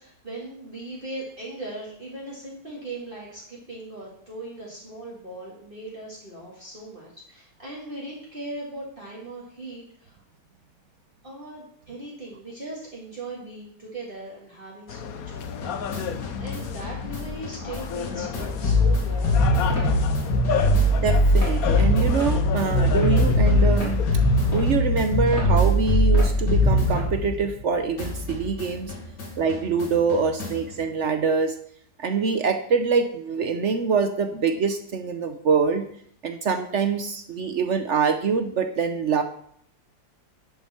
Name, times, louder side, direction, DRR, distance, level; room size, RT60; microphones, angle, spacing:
voice 1, 0.0-10.2 11.2-20.0, right 2 dB, 30° right, -5 dB, 2.4 m, -39 dB
sound 1, 14.9-24.7, left 8 dB, 65° left, 1.1 m, -32 dB
sound 2, 15.4-27.7 28.0-30.7, left 1 dB, 85° left, 2.8 m, -22 dB
sound 3, 19.7-19.9 20.5-20.7 21.3-21.6 22.2-22.4 23.0-23.3 23.8-24.0 24.5-24.7 25.3-25.5 26.1-26.3 26.9-27.1, left 1 dB, 40° left, 3.5 m, -34 dB
voice 2, 21.0-24.0 24.5-28.9 29.4-31.6 32.0-35.8 36.2-39.2, right 5 dB, 55° right, 8 dB, 0.8 m, -24 dB
11.0 x 7.9 x 4.3 m, 0.64 s
omnidirectional pair, 1.8 m